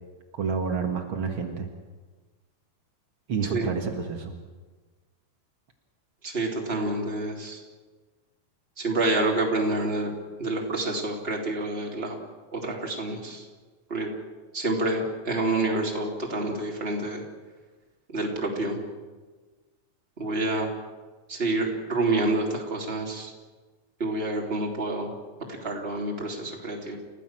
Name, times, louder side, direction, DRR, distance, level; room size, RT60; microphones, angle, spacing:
voice 1, 0.3-1.7 3.3-4.3, right 5 dB, 85° right, 3 dB, 1.1 m, -29 dB
voice 2, 6.2-7.6 8.8-10.1 10.4-12.2 12.5-13.4 13.9-14.1 14.5-17.2 18.1-18.8 20.2-20.7 21.3-23.3 24.0-25.1 25.5-27.0, right 2 dB, 15° right, 0 dB, 2.7 m, -28 dB
29.5 x 15.0 x 7.5 m, 1.3 s
omnidirectional pair, 5.2 m